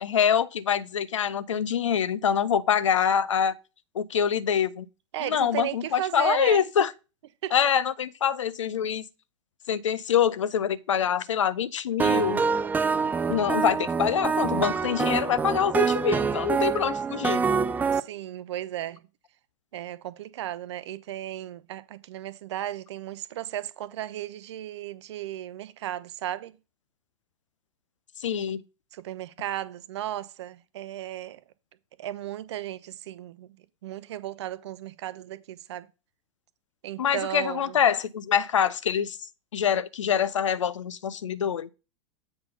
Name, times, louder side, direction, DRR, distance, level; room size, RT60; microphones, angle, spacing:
voice 1, 0.0-3.5 3.9-4.9 5.2-6.9 7.5-9.1 9.7-12.5 13.3-17.5 28.2-28.6 37.0-39.2 39.5-41.7, left 8 dB, 70° left, 0.5 m, -25 dB
voice 2, 5.1-6.6 7.4-7.5 17.9-19.0 19.7-26.5 28.9-31.4 32.0-33.5 33.8-35.9 36.8-37.8, right 12 dB, 55° right, 0.7 m, -35 dB
sound 1, 12.0-18.0, right 5 dB, 10° right, 0.4 m, -25 dB
7.8 x 3.9 x 5.4 m
figure-of-eight pair, 95°, 17 cm